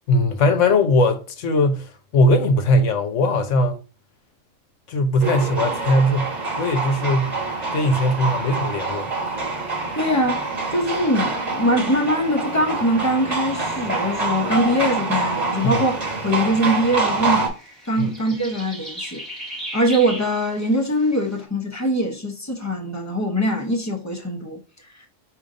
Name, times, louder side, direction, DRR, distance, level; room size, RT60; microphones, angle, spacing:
voice 1, 0.1-3.8 4.9-7.4 7.7-9.1 15.6-15.8 18.0-18.1, left 1 dB, 70° left, 1.0 m, -20 dB
sound 1, 5.2-17.5, right 3 dB, 30° right, 1.2 m, -26 dB
voice 2, 9.9-16.0 16.2-17.5 17.9-19.2 19.7-24.6, equal, 15° left, 0.6 m, -22 dB
sound 2, 15.5-21.4, equal, ahead, 1.1 m, -39 dB
5.1 x 2.8 x 3.7 m
omnidirectional pair, 1.4 m